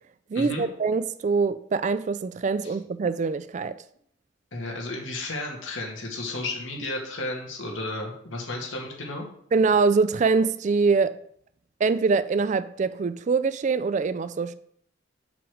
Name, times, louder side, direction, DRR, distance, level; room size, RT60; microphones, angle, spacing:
voice 1, 0.3-3.8 9.5-11.2 11.8-14.5, right 4 dB, 40° right, 0.3 m, -24 dB
voice 2, 4.5-9.3, left 2 dB, 90° left, 2.1 m, -33 dB
5.9 x 5.0 x 6.4 m
head